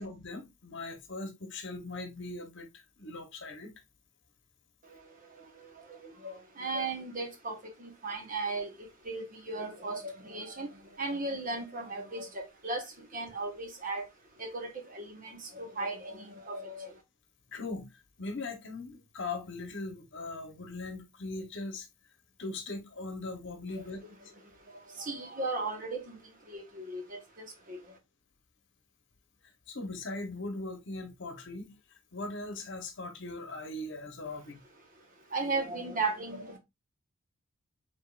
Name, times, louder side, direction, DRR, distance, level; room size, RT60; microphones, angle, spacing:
voice 1, 0.0-3.7 17.5-21.9 22.4-24.1 29.7-31.7 32.1-34.6, left 2 dB, 55° left, 1.0 m, -40 dB
voice 2, 6.0-8.7 9.0-10.7 11.0-12.8 13.1-14.0 14.4-16.9 23.7-23.8 25.0-26.2 26.5-27.8 35.3-36.6, right 3 dB, 35° right, 1.1 m, -36 dB
5.1 x 3.8 x 2.4 m
head